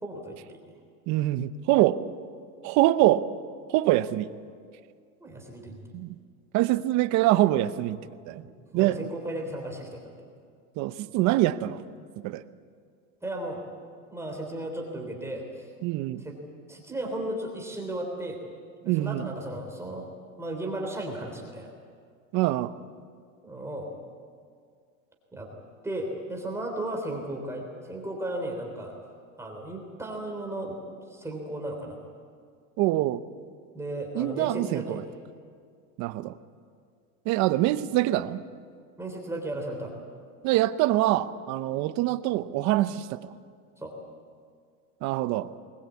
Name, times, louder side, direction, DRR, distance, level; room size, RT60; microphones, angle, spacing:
voice 1, 0.0-0.6 5.2-5.9 8.4-10.3 13.2-13.6 14.1-15.7 16.1-16.4 16.7-18.4 18.8-20.1 20.4-21.7 23.4-23.9 25.3-25.5 25.8-28.9 29.4-30.8 31.1-32.0 33.7-35.1 39.0-39.9 43.8-43.9, right 1 dB, 5° right, 1 dB, 3.3 m, -35 dB
voice 2, 1.1-2.0 2.6-3.2 3.7-4.3 5.9-6.2 6.5-8.0 8.3-8.4 8.7-9.0 10.8-11.8 12.2-12.4 15.8-16.3 18.8-19.3 22.3-22.7 32.8-33.2 34.1-35.0 36.0-36.4 37.3-38.4 40.4-43.2 45.0-45.5, right 15 dB, 45° right, 12 dB, 0.9 m, -24 dB
21.5 x 20.0 x 8.4 m, 2.1 s
supercardioid pair, 140°, 39 cm